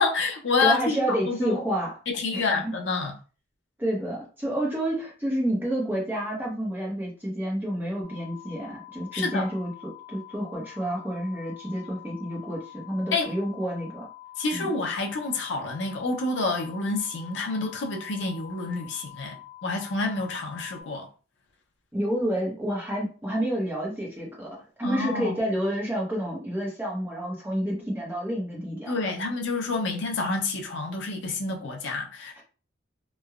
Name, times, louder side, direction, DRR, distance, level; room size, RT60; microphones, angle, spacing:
voice 1, 0.0-1.6 2.1-3.1 9.1-9.5 13.1-13.3 14.4-19.4 19.6-21.1 24.8-25.4 28.9-32.4, left 3 dB, 65° left, 0.5 m, -28 dB
voice 2, 0.6-1.9 2.3-2.7 3.8-14.1 14.5-14.7 21.9-29.0, right 1 dB, 10° right, 0.8 m, -29 dB
sound 1, 8.0-20.8, left 14 dB, 60° right, 0.8 m, -46 dB
3.1 x 2.1 x 2.3 m
head